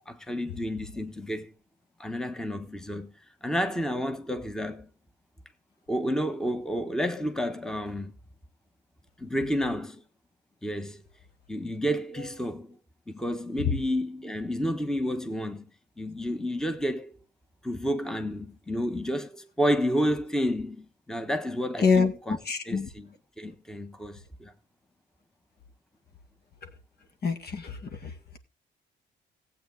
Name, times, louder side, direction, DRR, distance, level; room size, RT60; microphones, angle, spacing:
voice 1, 0.1-1.5 2.0-3.1 3.4-4.9 5.9-8.1 9.2-10.0 10.6-11.0 11.5-12.8 13.1-15.6 16.0-17.1 17.6-24.5, equal, 5° left, 1.3 m, -30 dB
voice 2, 22.5-22.9 27.2-27.6, left 5 dB, 55° left, 2.0 m, -24 dB
15.5 x 8.4 x 3.7 m
cardioid pair, 90°, 20 cm